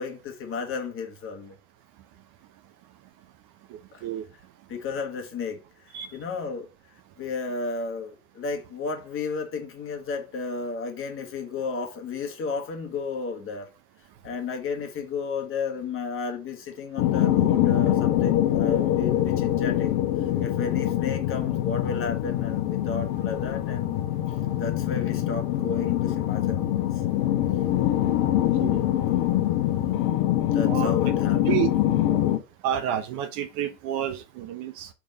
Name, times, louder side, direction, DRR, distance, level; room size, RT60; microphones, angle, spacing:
voice 1, 0.0-1.6 3.9-4.0 4.7-6.7 7.2-13.7 14.2-20.0 20.4-24.1 24.6-27.0 29.7-31.6, left 4 dB, 30° left, 1.4 m, -33 dB
sound 1, 17.0-32.4, left 12 dB, 50° left, 1.0 m, -24 dB
voice 2, 32.6-34.9, right 10 dB, 40° right, 0.8 m, -29 dB
5.1 x 3.6 x 5.1 m
hypercardioid pair, 95°, 45 cm